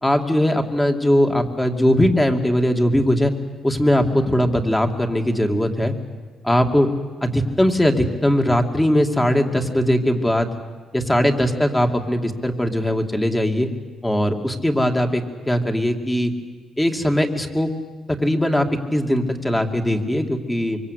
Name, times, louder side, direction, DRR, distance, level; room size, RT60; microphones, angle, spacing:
voice 1, 0.0-3.3 3.6-5.9 6.4-6.9 7.2-10.5 10.9-13.7 14.0-16.3 16.8-17.7 18.1-20.8, equal, 10° left, 4 dB, 2.6 m, -20 dB
25.0 x 24.0 x 8.4 m, 1.4 s
cardioid pair, 90°, 0 cm